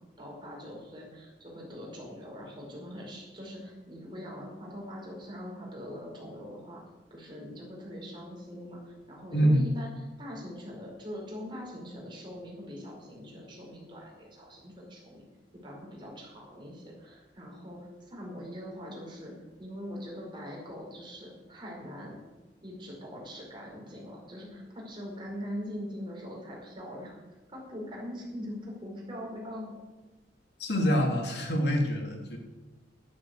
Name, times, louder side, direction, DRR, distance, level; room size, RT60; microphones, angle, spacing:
voice 1, 0.2-6.8 7.1-9.9 10.2-15.2 15.6-17.8 18.1-22.2 22.6-27.2 27.5-29.7, equal, 25° right, -3 dB, 5.0 m, -42 dB
voice 2, 9.3-9.6 30.6-32.4, equal, 65° left, 1 dB, 3.1 m, -25 dB
11.0 x 9.6 x 8.2 m, 1.2 s
head